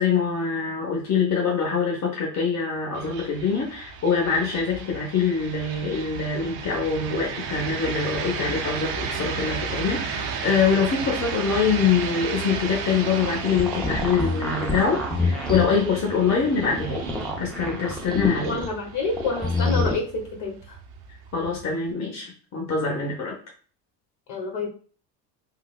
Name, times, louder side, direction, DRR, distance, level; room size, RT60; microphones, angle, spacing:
voice 1, 0.0-17.1 17.4-18.6 21.3-23.4, left 5 dB, 35° left, -1 dB, 1.0 m, -24 dB
sound 1, 2.9-21.9, right 6 dB, 65° right, 0.8 m, -34 dB
sound 2, 13.0-15.8 16.5-18.7 19.0-19.9, left 3 dB, ahead, 0.5 m, -27 dB
voice 2, 18.4-20.8 24.3-24.7, left 3 dB, 55° left, 0 dB, 1.3 m, -28 dB
3.7 x 2.0 x 2.4 m, 0.40 s
hypercardioid pair, 75°, 50 cm